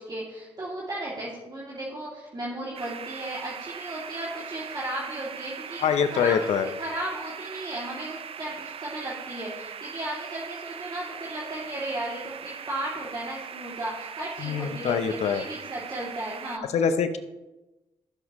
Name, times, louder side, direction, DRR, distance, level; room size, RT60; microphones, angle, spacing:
voice 1, 0.0-16.7, right 1 dB, 40° right, -6 dB, 2.8 m, -35 dB
sound 1, 2.7-16.6, right 7 dB, 60° right, 0.6 m, -40 dB
voice 2, 5.8-6.7 14.4-15.4 16.7-17.2, left 7 dB, 80° left, 10 dB, 0.8 m, -24 dB
15.0 x 7.3 x 3.1 m, 1.1 s
supercardioid pair, 50°, 11 cm